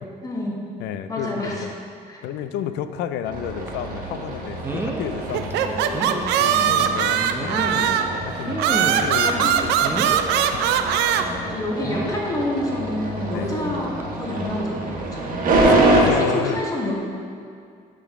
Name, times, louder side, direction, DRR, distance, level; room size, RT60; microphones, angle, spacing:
voice 1, 0.2-0.6 1.1-1.7 2.1-2.2 5.6-6.8 9.2-9.5 11.4-15.3 15.9-16.9, left 1 dB, 20° left, -3 dB, 1.3 m, -28 dB
voice 2, 0.8-1.7 2.2-5.8 6.4-10.2 10.5-10.6 13.3-13.5 15.5-16.6, left 9 dB, 85° left, 10 dB, 0.4 m, -31 dB
sound 1, 3.3-16.0, right 2 dB, 55° right, 1.3 m, -26 dB
sound 2, 3.7-3.8 4.6-5.1 5.5-5.6 5.9-6.2 7.1-8.0 8.5-9.2 9.8-10.3 11.8-12.3 13.4-13.6 14.0-14.1, right 2 dB, 15° right, 0.6 m, -29 dB
sound 3, 5.3-8.2 8.6-11.2, right 9 dB, 80° right, 0.4 m, -21 dB
11.0 x 3.8 x 3.6 m, 2.3 s
cardioid pair, 110°, 17 cm